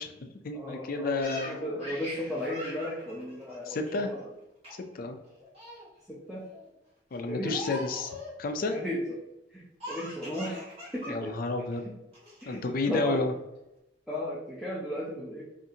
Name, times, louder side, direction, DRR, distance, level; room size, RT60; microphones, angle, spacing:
voice 1, 0.0-1.9 3.7-4.1 4.9-5.2 7.1-8.1 8.4-8.7 11.1-11.9 12.5-13.3, left 3 dB, 50° left, 6 dB, 0.4 m, -31 dB
voice 2, 0.5-4.2 6.1-6.5 7.3-7.6 8.7-9.2 9.5-10.7 10.9-11.3 12.4-13.2 14.1-15.4, equal, ahead, -6 dB, 0.6 m, -35 dB
Laughter, 1.2-4.2 4.6-4.9 5.2-5.9 6.3-6.7 7.4-8.4 9.8-11.1 11.4-11.5 12.1-12.6, left 1 dB, 35° right, 1.4 m, -42 dB
5.4 x 2.5 x 2.8 m, 0.91 s
head